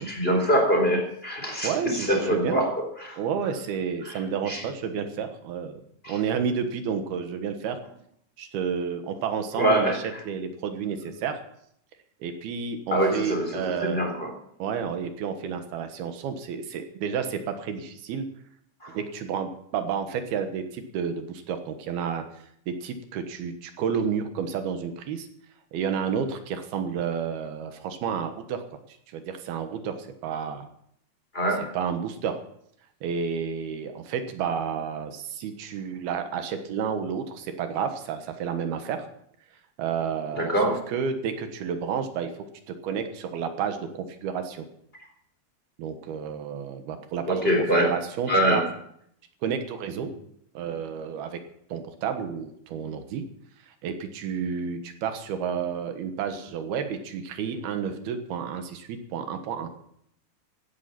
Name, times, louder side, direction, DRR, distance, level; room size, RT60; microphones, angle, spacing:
voice 1, 0.0-2.7 3.0-3.2 4.1-4.2 4.5-4.6 6.0-6.2 9.6-10.0 12.9-14.3 18.8-19.0 31.3-31.7 40.3-40.8 47.3-47.9 48.3-48.6, right 1 dB, 15° left, 2 dB, 3.5 m, -24 dB
voice 2, 1.6-2.6 3.2-5.8 6.1-7.8 8.4-11.4 12.2-14.1 14.6-18.3 19.0-22.3 22.7-25.3 25.7-28.6 29.1-30.7 31.7-32.4 33.0-39.1 39.8-42.3 42.7-44.7 45.8-48.6 49.4-50.2 50.6-51.4 51.7-53.3 53.8-59.7, right 7 dB, 80° right, 7 dB, 3.3 m, -31 dB
16.0 x 12.0 x 6.0 m, 0.69 s
omnidirectional pair, 4.4 m